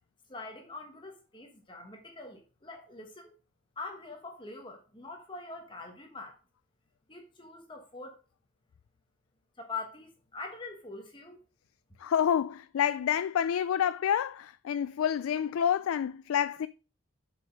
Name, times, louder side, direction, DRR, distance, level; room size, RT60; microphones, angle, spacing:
voice 1, 0.3-3.3 3.8-6.4 7.1-8.2 9.6-11.4, left 3 dB, 25° left, 1.2 m, -43 dB
voice 2, 12.0-16.7, left 8 dB, 85° left, 0.3 m, -28 dB
7.9 x 5.0 x 5.1 m
head